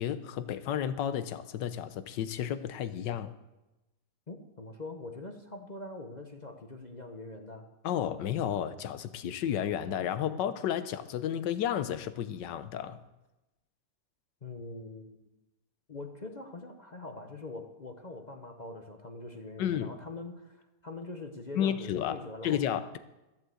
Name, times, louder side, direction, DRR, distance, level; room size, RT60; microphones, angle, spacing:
voice 1, 0.0-3.3 7.8-13.0 19.6-19.9 21.6-23.0, left 10 dB, 80° left, 12 dB, 1.4 m, -32 dB
voice 2, 4.3-7.7 14.4-15.3 15.9-22.6, left 2 dB, 35° left, 4 dB, 0.7 m, -43 dB
14.5 x 7.5 x 7.8 m, 1.0 s
omnidirectional pair, 1.9 m